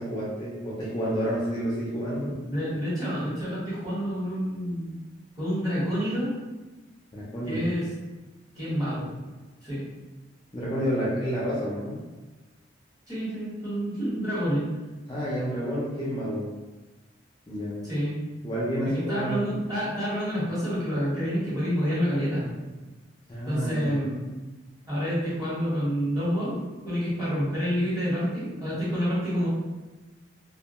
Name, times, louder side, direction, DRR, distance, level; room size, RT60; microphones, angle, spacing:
voice 1, 0.0-2.3 7.1-7.7 10.5-12.0 15.1-16.5 17.5-17.8 18.4-19.5 23.3-24.0, equal, 25° left, -6 dB, 0.4 m, -29 dB
voice 2, 2.2-4.9 5.4-6.3 7.4-7.9 8.5-9.1 9.6-9.8 13.1-14.7 17.8-18.2 18.8-22.5 23.4-24.2 24.9-26.6 26.8-29.5, equal, 20° right, -10 dB, 1.2 m, -28 dB
2.3 x 2.2 x 2.9 m, 1.2 s
head